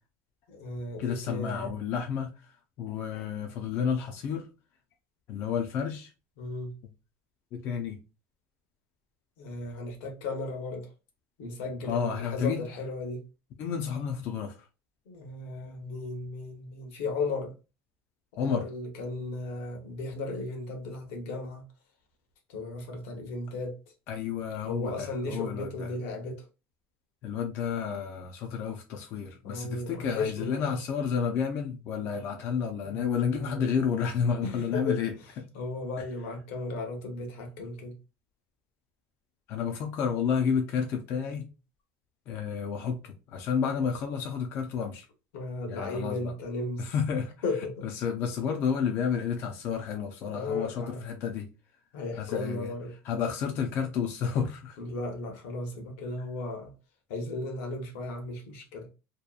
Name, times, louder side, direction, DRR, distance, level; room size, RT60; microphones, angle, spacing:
voice 1, 0.5-1.7 6.4-6.7 9.4-10.9 11.4-13.2 15.1-17.5 18.4-21.6 22.5-23.8 24.6-26.5 29.4-30.8 32.8-33.7 34.4-35.0 35.5-38.0 45.3-46.9 47.4-47.9 50.3-51.0 51.9-52.9 54.8-56.7 57.1-58.9, left 2 dB, 75° left, 0.9 m, -35 dB
voice 2, 1.0-4.5 5.3-6.1 7.5-8.0 11.8-12.6 13.6-14.7 18.4-18.7 24.1-25.9 27.2-35.1 39.5-41.5 42.3-45.1 45.7-46.3 46.8-47.3 47.8-51.5 52.2-52.7 53.0-54.8, left 7 dB, 35° left, 0.3 m, -31 dB
2.7 x 2.1 x 2.3 m
cardioid pair, 170°, 7 cm